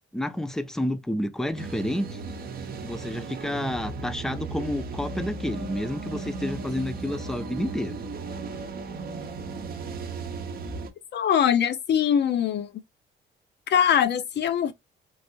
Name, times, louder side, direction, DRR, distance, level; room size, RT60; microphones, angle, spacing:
voice 1, 0.1-2.2 2.8-8.0, left 1 dB, ahead, 0.5 m, -30 dB
sound 1, 1.6-10.9, right 4 dB, 50° right, 0.6 m, -35 dB
voice 2, 11.1-12.7 13.7-14.7, left 9 dB, 60° left, 0.6 m, -22 dB
3.2 x 2.6 x 2.7 m
cardioid pair, 90°, 20 cm